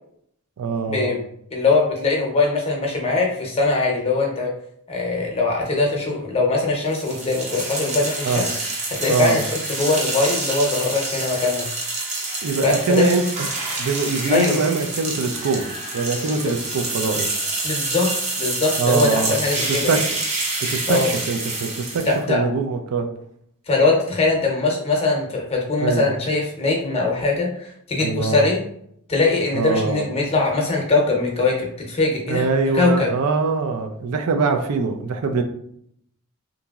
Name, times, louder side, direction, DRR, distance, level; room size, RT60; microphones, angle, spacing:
voice 1, 0.6-1.2 8.2-8.4 9.1-9.4 12.4-13.5 13.8-15.7 15.9-17.3 18.8-20.2 20.6-23.1 25.8-26.1 28.0-28.5 29.5-30.0 32.3-35.4, right 4 dB, 85° right, 6 dB, 0.4 m, -23 dB
voice 2, 1.5-4.5 4.9-8.5 8.9-11.7 12.6-13.1 14.3-14.6 16.4-16.5 17.6-18.1 18.4-19.8 20.9-21.1 22.0-22.4 23.7-28.6 29.1-32.5 32.7-33.1, left 3 dB, 30° left, 0 dB, 0.7 m, -21 dB
sound 1, 6.9-22.2, right 2 dB, 30° right, 0.6 m, -27 dB
2.9 x 2.6 x 2.3 m, 0.69 s
head